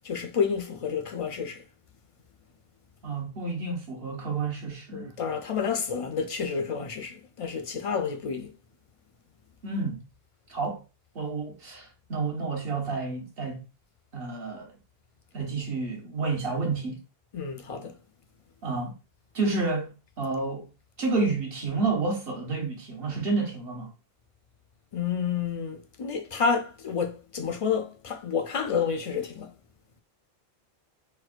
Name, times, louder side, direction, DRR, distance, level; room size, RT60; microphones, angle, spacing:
voice 1, 0.0-1.6 4.9-8.5 17.3-18.0 24.9-29.5, left 6 dB, 55° left, 0.3 m, -29 dB
voice 2, 3.0-5.1 9.6-10.0 10.5-10.8 11.1-13.7 14.1-14.7 15.3-17.0 18.6-18.9 19.3-20.7 21.0-23.9, right 3 dB, 65° right, 1.2 m, -30 dB
4.5 x 2.2 x 2.4 m
omnidirectional pair, 1.0 m